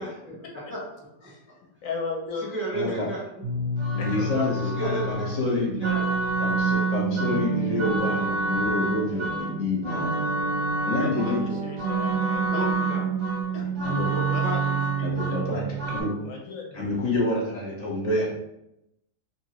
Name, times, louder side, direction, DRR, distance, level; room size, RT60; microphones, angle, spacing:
voice 1, 0.0-1.5 2.4-3.4 4.5-6.2 12.5-13.1 14.1-14.8, right 1 dB, 15° right, -6 dB, 0.4 m, -34 dB
voice 2, 1.8-2.5 3.9-4.5 11.0-12.6 13.5-13.6 14.3-14.6 15.0-15.5 16.2-16.9, left 4 dB, 70° left, 0 dB, 0.9 m, -36 dB
voice 3, 2.7-3.1 3.9-5.8 6.4-10.2 10.8-11.6 13.5-14.1 15.0-16.2 16.7-18.3, left 2 dB, 35° left, -4 dB, 0.7 m, -28 dB
sound 1, 3.4-16.0, right 3 dB, 55° right, 0.9 m, -27 dB
2.7 x 2.7 x 2.9 m, 0.84 s
omnidirectional pair, 1.7 m